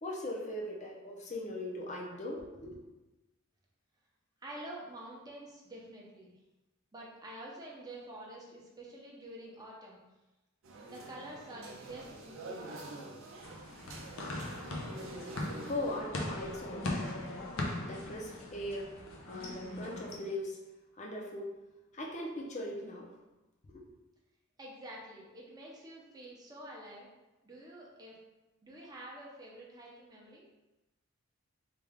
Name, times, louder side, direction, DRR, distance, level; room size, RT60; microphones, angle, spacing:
voice 1, 0.0-2.8 15.6-17.4 17.8-19.0 19.3-20.6 21.0-21.5 21.9-23.1 23.6-23.9, left 1 dB, 35° left, -2 dB, 0.6 m, -39 dB
voice 2, 4.4-6.3 6.9-10.0 10.9-12.9 24.6-27.1 27.4-28.2 28.6-30.4, right 1 dB, 20° right, -4 dB, 0.7 m, -48 dB
sound 1, 10.6-16.0, right 2 dB, 70° right, 0.5 m, -47 dB
sound 2, 13.4-20.2, left 1 dB, 75° left, 0.6 m, -40 dB
3.3 x 2.4 x 3.5 m, 1.0 s
head